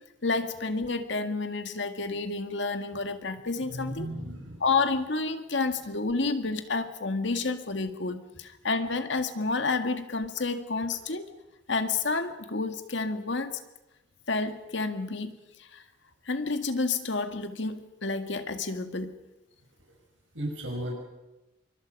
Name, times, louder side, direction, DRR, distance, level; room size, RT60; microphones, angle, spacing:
voice 1, 0.2-4.1 4.6-11.3 11.7-13.6 14.3-15.8 16.3-19.1, left 3 dB, 70° left, 7 dB, 1.8 m, -30 dB
voice 2, 3.7-4.6 20.3-20.9, equal, 85° right, 0 dB, 5.6 m, -35 dB
26.0 x 24.0 x 5.3 m, 1.0 s
head